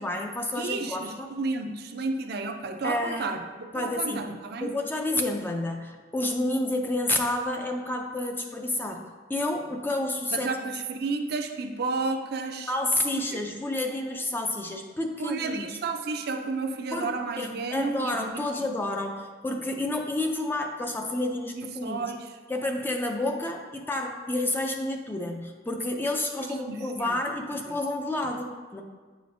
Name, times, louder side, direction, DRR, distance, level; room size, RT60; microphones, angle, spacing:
voice 1, 0.0-1.3 2.8-3.3 3.7-4.3 4.6-10.5 12.7-15.7 16.9-22.0 22.5-28.8, left 1 dB, 10° left, 3 dB, 0.4 m, -30 dB
voice 2, 0.6-3.4 3.7-4.7 10.3-12.7 13.3-13.4 15.2-18.6 21.6-22.3 26.7-27.2 27.7-27.8, right 3 dB, 55° right, 6 dB, 0.5 m, -32 dB
9.0 x 5.0 x 2.6 m, 1.4 s
head